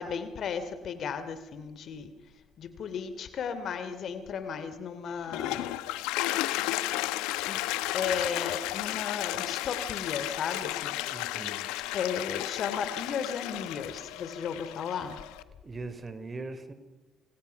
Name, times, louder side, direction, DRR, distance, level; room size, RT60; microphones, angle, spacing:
voice 1, 0.0-2.1 2.6-5.8 6.0-6.2 7.5-7.6 7.9-11.0 11.9-15.2, left 6 dB, 60° left, 11 dB, 3.0 m, -35 dB
Toilet flush, 5.1-15.4, left 16 dB, 75° left, 1.1 m, -33 dB
voice 2, 11.1-11.7 15.6-16.7, right 3 dB, 35° right, 11 dB, 4.0 m, -40 dB
29.0 x 26.5 x 5.9 m, 1.2 s
hypercardioid pair, 50°, 0 cm